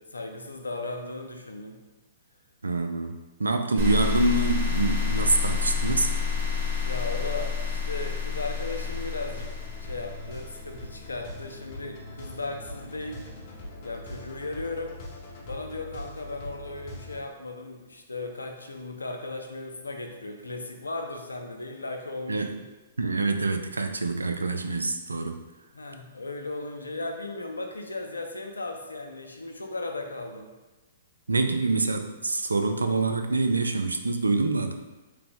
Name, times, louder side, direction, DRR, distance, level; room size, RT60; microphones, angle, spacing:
voice 1, 0.0-1.8 6.8-9.5 9.8-13.2 13.8-14.9 15.5-22.5 25.7-30.5, left 2 dB, 85° left, 3 dB, 0.5 m, -36 dB
voice 2, 2.6-6.1 22.3-22.5 23.0-25.4 31.3-34.7, right 3 dB, 85° right, 6 dB, 0.3 m, -26 dB
sound 1, 3.8-10.9, left 6 dB, 50° right, 1.3 m, -29 dB
sound 2, 8.5-17.2, left 1 dB, 45° left, 0.8 m, -42 dB
3.3 x 2.9 x 3.4 m, 1.1 s
figure-of-eight pair, 120°, 0 cm